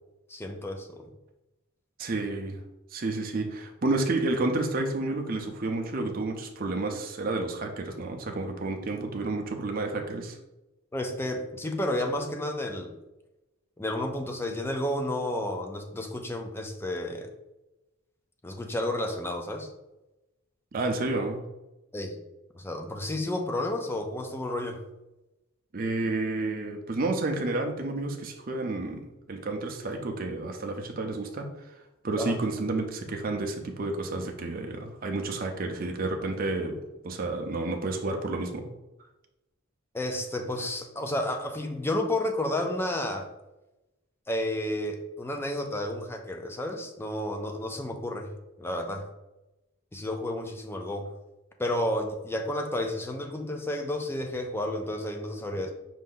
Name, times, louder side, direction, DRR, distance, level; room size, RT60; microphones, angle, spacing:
voice 1, 0.3-1.1 10.9-12.9 13.8-17.3 18.4-19.7 21.9-22.2 22.5-24.8 32.2-32.4 39.9-43.3 44.3-48.3 48.6-49.1 49.9-51.1 51.6-55.7, left 1 dB, 10° left, 4 dB, 0.4 m, -31 dB
voice 2, 2.0-2.6 2.9-10.4 20.7-21.4 25.7-31.7 32.0-36.8 37.0-38.7, right 2 dB, 45° right, 3 dB, 0.5 m, -30 dB
5.2 x 2.7 x 3.8 m, 0.99 s
head